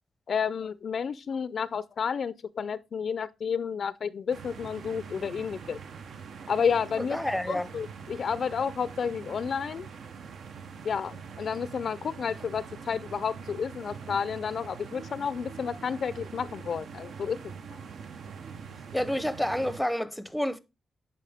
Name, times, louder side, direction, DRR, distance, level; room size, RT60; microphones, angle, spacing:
voice 1, 0.3-5.8 6.5-7.2 7.5-9.9 10.8-17.4, left 6 dB, 60° left, 0.4 m, -31 dB
sound 1, 4.3-19.8, right 6 dB, 75° right, 0.8 m, -44 dB
voice 2, 7.0-7.7 18.9-20.6, left 1 dB, 5° left, 0.6 m, -29 dB
9.2 x 5.5 x 3.5 m
cardioid pair, 110°, 0 cm